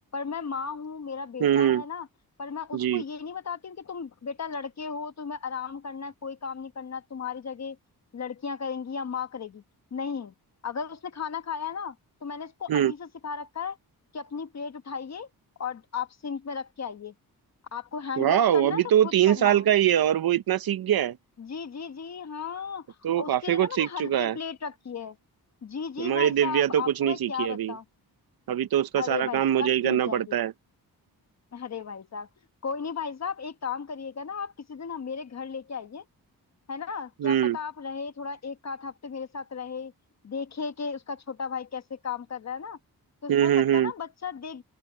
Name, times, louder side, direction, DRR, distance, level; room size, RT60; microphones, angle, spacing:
voice 1, 0.1-2.1 2.4-7.8 8.1-9.6 9.9-10.3 10.6-12.0 12.2-13.8 14.1-15.3 15.6-17.1 17.7-19.7 21.4-25.2 25.6-27.8 29.0-30.4 31.5-32.3 32.6-36.0 36.7-39.9 40.2-42.8 43.2-44.6, left 6 dB, 45° left, 1.2 m, -35 dB
voice 2, 1.4-1.8 2.7-3.0 12.7-12.9 18.2-21.2 23.0-24.4 26.0-27.7 28.5-30.5 37.2-37.6 43.3-43.9, right 10 dB, 65° right, 0.7 m, -23 dB
open air
wide cardioid pair, 175°, 38 cm